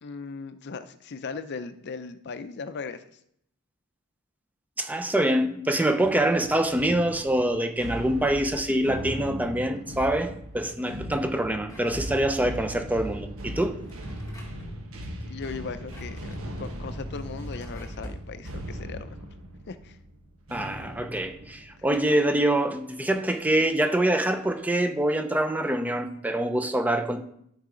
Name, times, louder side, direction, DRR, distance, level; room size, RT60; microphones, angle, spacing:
voice 1, 0.0-3.2 9.9-10.0 15.2-19.2 19.7-20.0, left 4 dB, 55° left, 0.5 m, -38 dB
voice 2, 4.8-13.8 20.5-27.2, right 1 dB, 5° right, 0.5 m, -25 dB
sound 1, 6.3-22.8 23.3-23.6 24.2-24.7, equal, 75° right, 1.4 m, -39 dB
Drawer open or close, 11.6-12.6 13.7-14.8 15.6-18.3, equal, 15° left, 1.7 m, -48 dB
12.5 x 4.7 x 3.8 m
head